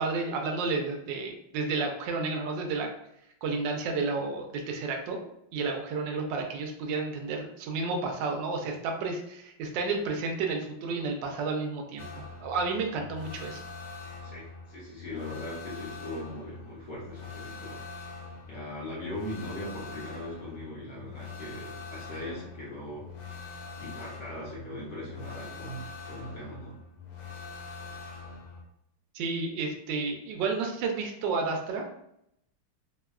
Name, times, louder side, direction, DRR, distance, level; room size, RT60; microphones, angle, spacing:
voice 1, 0.0-2.9 3.4-5.2 5.5-13.6 29.1-31.8, right 4 dB, 75° right, 3 dB, 1.1 m, -31 dB
sound 1, 12.0-28.6, left 4 dB, 85° left, 1.5 m, -44 dB
voice 2, 14.2-17.8 18.5-23.1 23.8-26.8, left 1 dB, 55° left, -7 dB, 1.3 m, -40 dB
3.4 x 2.2 x 2.3 m, 0.77 s
omnidirectional pair, 2.3 m